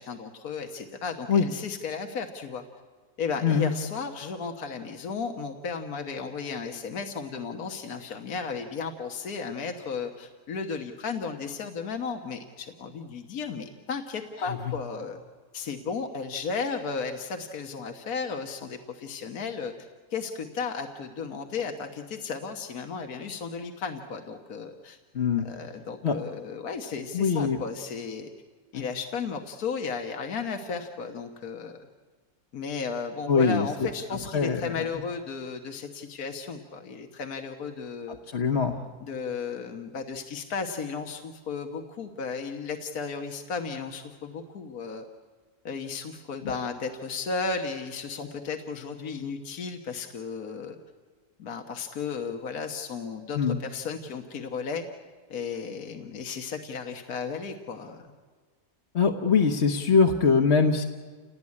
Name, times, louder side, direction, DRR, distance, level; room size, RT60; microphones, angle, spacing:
voice 1, 0.0-2.6 3.2-15.2 15.5-19.7 20.1-25.0 25.4-28.3 28.7-31.8 32.5-38.2 39.0-45.0 45.7-50.8 51.4-54.8 55.3-58.1, left 5 dB, 75° left, 5 dB, 1.8 m, -34 dB
voice 2, 25.1-25.5 26.0-26.2 27.1-27.6 28.7-28.8 33.3-33.9 34.3-34.9 38.3-38.8 46.4-46.5 53.3-53.6 58.9-60.8, left 5 dB, 50° left, 2 dB, 1.3 m, -23 dB
29.0 x 18.5 x 9.7 m, 1.5 s
omnidirectional pair, 1.6 m